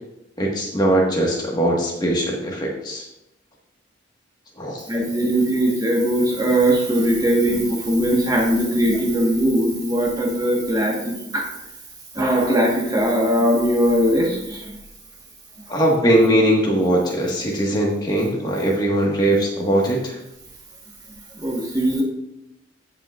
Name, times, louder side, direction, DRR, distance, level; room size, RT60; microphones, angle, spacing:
voice 1, 0.4-3.0 4.6-4.8 15.7-20.2, right 1 dB, 20° left, -2 dB, 1.6 m, -20 dB
voice 2, 4.9-11.4 12.1-14.6 21.4-22.0, equal, 20° right, -2 dB, 1.5 m, -20 dB
16.0 x 5.8 x 2.5 m, 0.89 s
head